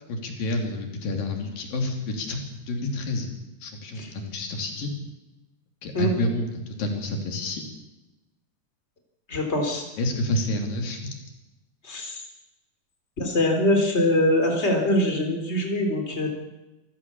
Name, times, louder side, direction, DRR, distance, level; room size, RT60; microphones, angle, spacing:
voice 1, 0.1-2.4 2.7-3.3 3.6-4.9 5.8-7.6 10.0-11.2, left 2 dB, 85° left, 3 dB, 4.7 m, -29 dB
voice 2, 9.3-9.8 11.8-12.2 13.2-16.3, left 1 dB, 20° left, 3 dB, 3.9 m, -23 dB
27.0 x 15.0 x 7.1 m, 1.0 s
omnidirectional pair, 3.9 m